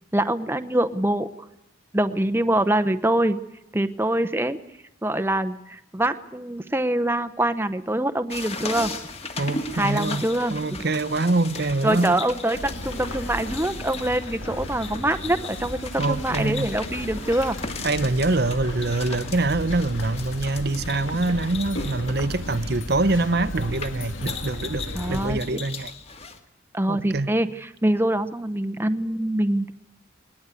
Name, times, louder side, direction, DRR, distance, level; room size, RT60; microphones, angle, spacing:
voice 1, 0.1-1.3 1.9-3.4 3.7-4.6 5.0-8.9 9.7-10.6 11.8-17.6 24.9-25.6 26.7-29.7, right 1 dB, 10° right, 0.8 m, -24 dB
sound 1, 8.3-26.4, left 3 dB, 30° left, 2.0 m, -37 dB
voice 2, 9.4-12.2 16.0-16.7 17.8-25.9 26.9-27.3, right 2 dB, 50° right, 0.9 m, -25 dB
sound 2, 12.5-25.4, left 1 dB, 80° left, 3.5 m, -35 dB
21.5 x 19.5 x 8.3 m
head